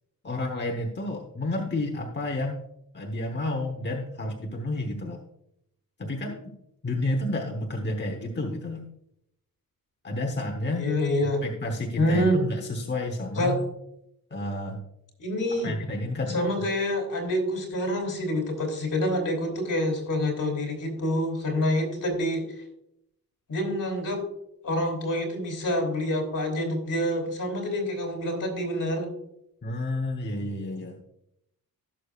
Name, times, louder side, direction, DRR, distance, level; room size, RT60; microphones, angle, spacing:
voice 1, 0.2-2.6 2.9-5.2 6.0-6.5 6.8-8.8 10.0-10.9 11.2-13.6 14.3-14.8 15.6-16.7 29.6-31.0, left 1 dB, 30° left, 3 dB, 1.0 m, -30 dB
voice 2, 10.7-11.4 12.0-12.4 13.4-13.6 15.2-15.7 16.3-22.4 23.5-24.2 24.6-29.1, left 1 dB, 60° left, 4 dB, 2.9 m, -27 dB
16.5 x 6.6 x 2.4 m, 0.78 s
wide cardioid pair, 110°, 35 cm